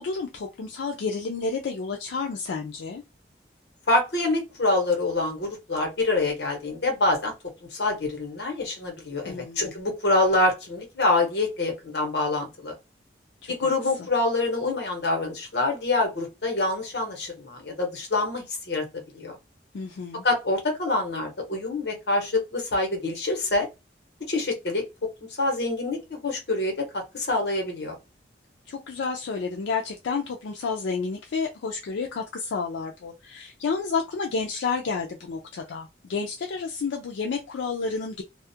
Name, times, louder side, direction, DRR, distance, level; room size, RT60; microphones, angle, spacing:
voice 1, 0.0-3.0 9.3-9.8 13.4-13.5 19.7-20.2 28.7-38.2, left 4 dB, 85° left, 0.4 m, -30 dB
voice 2, 3.9-7.3 7.6-12.7 13.5-18.8 19.1-19.4 20.2-23.7 24.2-24.8 25.3-27.9, left 2 dB, 65° left, 1.0 m, -26 dB
2.3 x 2.1 x 2.7 m
head